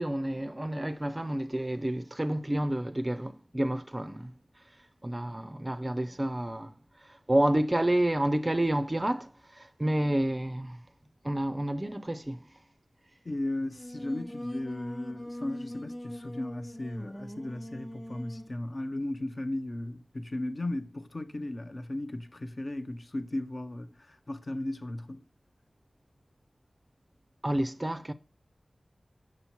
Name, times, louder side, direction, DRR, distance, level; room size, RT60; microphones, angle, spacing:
voice 1, 0.0-4.3 5.0-6.7 7.3-10.8 11.2-12.4 27.4-28.1, right 1 dB, 20° right, 0.4 m, -29 dB
voice 2, 13.3-25.2, left 1 dB, 45° left, 0.5 m, -36 dB
Singing, 13.7-18.6, equal, ahead, 0.8 m, -42 dB
6.2 x 5.6 x 2.9 m
wide cardioid pair, 65°, 0 cm